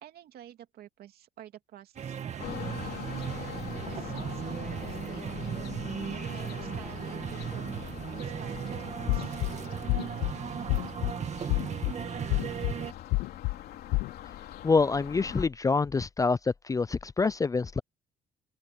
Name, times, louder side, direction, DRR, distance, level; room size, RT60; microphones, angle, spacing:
voice 1, 0.0-2.5 2.8-9.4, right 12 dB, 65° right, 2.6 m, -50 dB
sound 1, 2.0-12.9, right 8 dB, 40° right, 1.9 m, -36 dB
sound 2, 2.4-15.5, left 12 dB, 70° left, 3.2 m, -43 dB
sound 3, 9.1-9.5 9.9-10.3 10.7-11.1 11.5-11.9 12.3-12.7 13.1-13.5 13.9-14.1, left 23 dB, 85° left, 0.5 m, -27 dB
voice 2, 14.6-16.4 16.6-17.8, left 4 dB, 20° left, 0.5 m, -26 dB
open air
cardioid pair, 110°, 17 cm